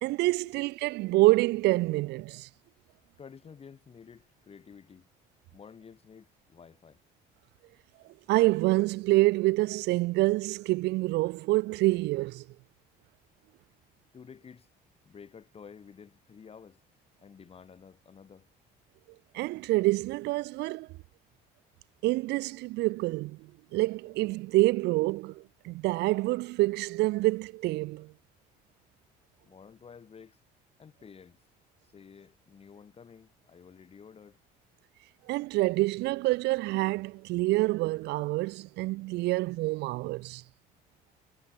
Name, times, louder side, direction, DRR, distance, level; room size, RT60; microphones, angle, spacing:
voice 1, 0.0-2.5 8.3-12.4 19.3-20.9 22.0-28.1 35.3-40.4, right 20 dB, 80° right, 0.5 m, -27 dB
voice 2, 3.2-5.1 5.5-7.0 14.1-14.7 15.0-16.8 17.2-18.5 29.4-30.4 30.8-31.4 31.8-34.4, left 6 dB, 35° left, 3.1 m, -51 dB
cardioid pair, 110°, 17 cm